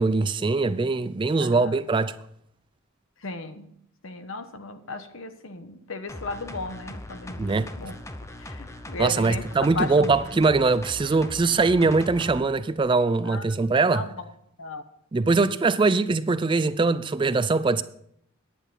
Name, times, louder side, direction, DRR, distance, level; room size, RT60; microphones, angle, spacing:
voice 1, 0.0-2.1 7.4-7.7 9.0-14.0 15.1-17.8, right 3 dB, 25° right, 0.3 m, -22 dB
voice 2, 1.4-1.8 3.2-3.7 4.0-7.9 8.4-9.5 9.7-10.4 13.3-13.4 13.9-14.3 14.6-14.8 15.8-15.9, left 2 dB, 70° left, 1.1 m, -35 dB
sound 1, 6.1-12.4 12.8-12.9, left 1 dB, 15° left, 0.7 m, -40 dB
10.0 x 8.9 x 5.5 m
head